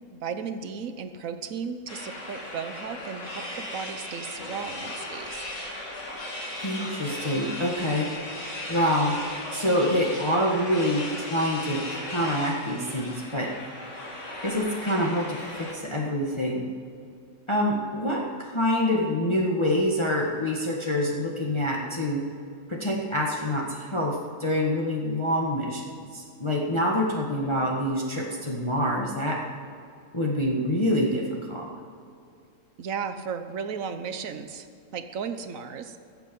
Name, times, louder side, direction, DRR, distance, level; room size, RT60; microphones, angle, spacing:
voice 1, 0.1-5.4 32.8-34.7 34.9-36.0, right 6 dB, 65° right, 8 dB, 1.2 m, -35 dB
sound 1, 1.9-15.7, left 1 dB, 55° left, 2.5 m, -37 dB
voice 2, 6.6-8.1 8.7-9.2 9.5-11.8 12.1-13.5 14.4-16.7 17.5-22.2 22.7-25.9 26.1-29.4 30.1-31.7, left 1 dB, 20° left, -3 dB, 1.5 m, -26 dB
21.5 x 8.0 x 5.3 m, 2.4 s
omnidirectional pair, 1.6 m